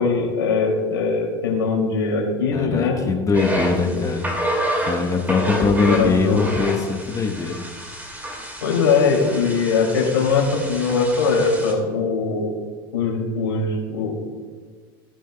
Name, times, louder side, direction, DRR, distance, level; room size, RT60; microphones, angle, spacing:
voice 1, 0.0-3.0 3.9-4.0 5.3-6.5 8.6-12.5 12.9-14.3, left 4 dB, 80° left, 0 dB, 2.9 m, -21 dB
voice 2, 2.5-4.3 4.8-7.6, left 4 dB, 25° left, 3 dB, 1.2 m, -22 dB
sound 1, 3.3-11.7, equal, 15° right, 2.5 m, -29 dB
17.0 x 9.2 x 2.3 m, 1.5 s
hypercardioid pair, 75°, 12 cm